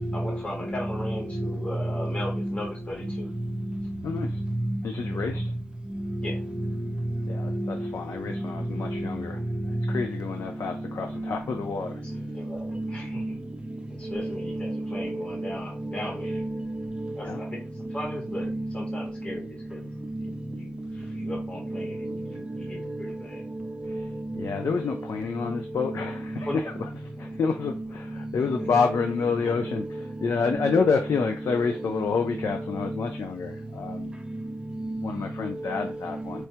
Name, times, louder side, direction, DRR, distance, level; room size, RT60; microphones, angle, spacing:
voice 1, 0.1-3.3 5.1-5.2 6.2-6.4 12.3-13.2 13.9-16.4 17.1-17.6 17.9-19.9 20.2-23.4 26.4-26.6 27.2-27.3, left 1 dB, 25° left, 1.0 m, -37 dB
voice 2, 4.0-4.4 4.8-5.4 7.3-9.4 9.7-12.0 17.2-17.4 23.8-24.1 24.4-26.7 27.2-34.1 35.0-36.5, left 5 dB, 90° left, 0.5 m, -29 dB
voice 3, 12.5-13.4 14.1-15.5 15.8-16.0 16.2-17.1 18.0-19.1 20.1-20.3 21.2-22.2 23.9-24.8 25.9-26.5 27.7-27.9 28.5-29.0 29.7-29.8 30.5-30.9 31.5-31.6 31.9-32.1 32.4-33.0 34.0-34.1 34.8-35.1 35.8-35.9, right 1 dB, 20° right, 0.6 m, -33 dB
4.5 x 2.2 x 2.8 m
wide cardioid pair, 170°, 5 cm